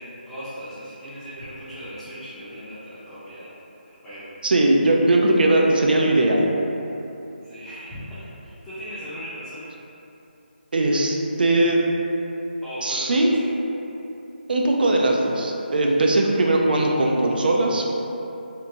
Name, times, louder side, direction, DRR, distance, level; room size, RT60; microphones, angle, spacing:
voice 1, 0.0-3.5 3.8-4.3 7.4-8.0 8.4-9.7 12.6-13.5, equal, 5° left, -14 dB, 0.5 m, -38 dB
voice 2, 4.4-6.5 10.7-11.8 12.8-13.3 14.5-17.8, right 2 dB, 60° right, -1 dB, 0.4 m, -19 dB
2.9 x 2.1 x 3.6 m, 2.9 s
figure-of-eight pair, 160°, 6 cm